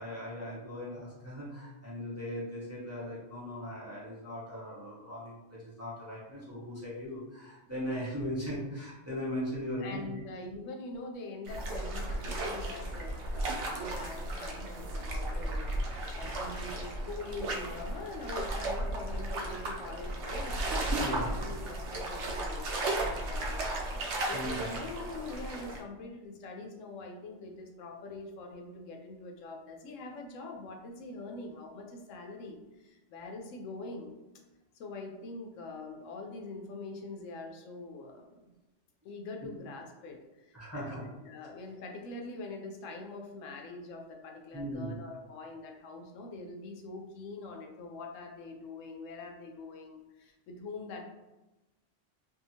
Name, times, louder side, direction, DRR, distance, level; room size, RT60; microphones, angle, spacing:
voice 1, 0.0-10.0 21.0-21.5 24.3-24.7 40.5-41.0 41.4-41.5 44.5-45.0, equal, 15° right, -8 dB, 0.6 m, -38 dB
voice 2, 9.8-34.2 34.7-38.5 39.0-51.0, left 3 dB, 90° left, 2 dB, 0.9 m, -44 dB
sound 1, 11.4-25.8, right 1 dB, 75° right, 0.9 m, -35 dB
2.7 x 2.4 x 2.7 m, 1.0 s
omnidirectional pair, 1.3 m